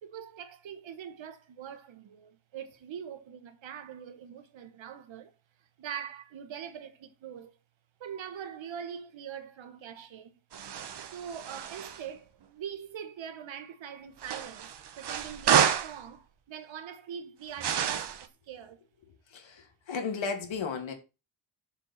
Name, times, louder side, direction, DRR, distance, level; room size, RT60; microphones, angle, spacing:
voice 1, 0.0-5.3 5.8-7.6 8.0-10.3 11.1-18.8, right 8 dB, 75° right, 1.4 m, -43 dB
sound 1, 10.5-12.0 14.2-16.0 17.6-18.3, right 8 dB, 60° right, 1.1 m, -29 dB
voice 2, 19.3-20.9, left 5 dB, 75° left, 2.6 m, -34 dB
7.3 x 4.9 x 7.2 m
wide cardioid pair, 135°, 46 cm